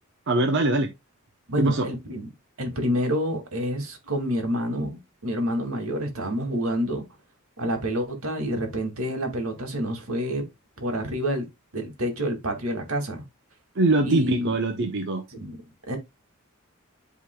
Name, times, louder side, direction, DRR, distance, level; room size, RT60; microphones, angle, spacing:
voice 1, 0.3-0.9 1.6-1.9 13.7-15.2, right 2 dB, 55° right, 0.8 m, -22 dB
voice 2, 1.5-2.3 2.6-7.0 7.6-10.5 10.8-11.5 11.7-13.2 14.0-14.5 15.3-15.6 15.9-16.0, equal, 85° right, 2.3 m, -28 dB
11.5 x 3.8 x 2.3 m
head